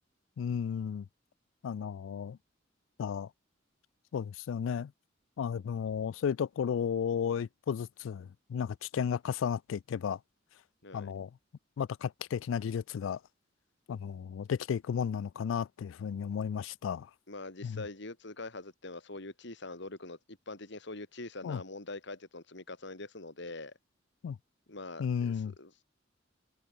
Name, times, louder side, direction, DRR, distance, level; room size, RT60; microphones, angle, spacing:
voice 1, 0.4-1.1 1.6-2.4 3.0-3.3 4.1-4.9 5.4-10.2 10.9-11.3 11.8-13.2 13.9-17.1 17.6-17.8 21.4-21.6 24.2-24.4 25.0-25.5, left 7 dB, 85° left, 0.3 m, -33 dB
voice 2, 17.3-23.7 24.7-25.7, left 2 dB, 65° left, 3.1 m, -44 dB
open air
head